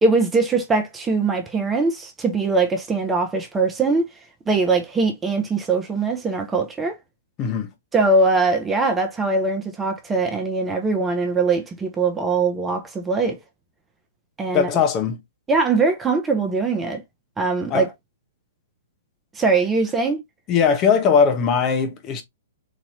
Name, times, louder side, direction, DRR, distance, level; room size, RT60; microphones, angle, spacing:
voice 1, 0.0-4.1 4.5-7.0 7.9-13.4 14.4-14.7 15.5-17.0 17.4-17.9 19.3-20.2, right 3 dB, 15° right, 0.9 m, -21 dB
voice 2, 7.4-7.7 14.5-15.2 17.7-17.8 20.5-22.2, left 6 dB, 30° left, 1.1 m, -19 dB
4.2 x 3.0 x 2.8 m
hypercardioid pair, 120°, 0 cm